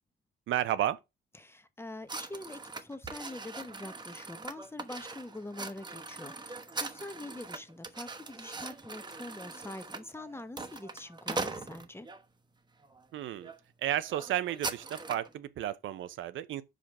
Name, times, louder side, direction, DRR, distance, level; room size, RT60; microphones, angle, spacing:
voice 1, 0.5-1.0 13.1-13.5 13.8-16.6, right 12 dB, 75° right, 0.7 m, -32 dB
voice 2, 1.4-12.1, left 2 dB, 10° left, 1.0 m, -44 dB
sound 1, 2.1-12.2 12.8-13.0 13.4-13.6 13.8-15.3, right 3 dB, 20° right, 1.1 m, -41 dB
5.1 x 5.0 x 6.0 m
cardioid pair, 90°, 20 cm